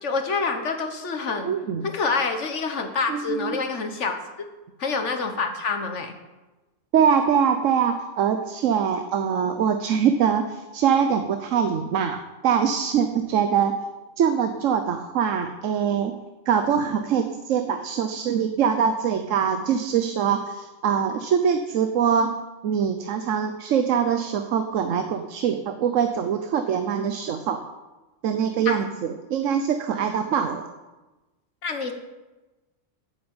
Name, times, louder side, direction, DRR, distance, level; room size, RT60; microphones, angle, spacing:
voice 1, 0.0-1.5 1.8-4.2 4.8-6.1 28.6-28.8 31.6-31.9, left 4 dB, 65° left, 6 dB, 1.6 m, -27 dB
voice 2, 1.4-1.9 3.1-3.6 6.9-13.7 14.2-16.2 16.5-22.3 22.6-27.6 28.2-30.6, right 7 dB, 80° right, 7 dB, 1.1 m, -23 dB
8.6 x 8.0 x 8.9 m, 1.1 s
omnidirectional pair, 1.3 m